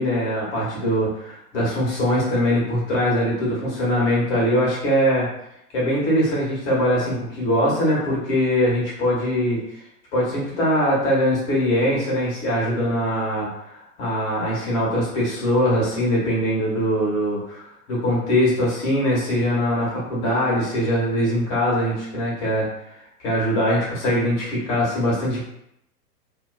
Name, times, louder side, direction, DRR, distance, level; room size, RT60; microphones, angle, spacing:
voice 1, 0.0-5.3 5.7-9.6 10.1-22.7 23.2-25.5, equal, 45° left, -5 dB, 1.4 m, -22 dB
2.9 x 2.3 x 2.3 m, 0.78 s
figure-of-eight pair, 105°, 47 cm